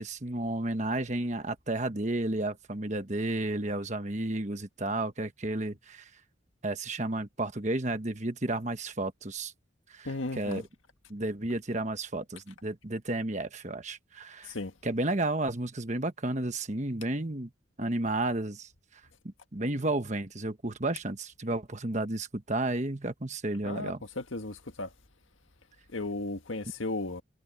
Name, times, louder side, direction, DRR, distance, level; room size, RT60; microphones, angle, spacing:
voice 1, 0.0-6.1 6.6-9.5 9.9-10.6 11.1-14.6 14.8-17.5 17.8-24.0, right 2 dB, 35° right, 1.3 m, -32 dB
voice 2, 10.0-10.6 14.5-14.7 23.6-24.9 25.9-27.2, left 2 dB, 80° left, 1.7 m, -35 dB
head